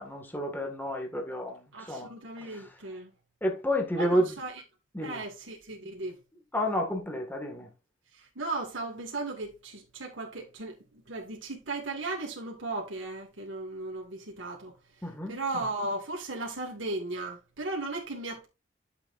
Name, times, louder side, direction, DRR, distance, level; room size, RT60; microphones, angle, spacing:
voice 1, 0.0-2.1 2.5-2.6 3.4-4.3 4.9-5.2 6.5-7.7 15.0-15.4, equal, 10° left, 1.8 m, -30 dB
voice 2, 1.7-3.1 4.0-4.6 5.0-6.2 8.1-10.8 11.1-18.5, right 2 dB, 70° right, 1.9 m, -36 dB
11.5 x 6.9 x 2.6 m
head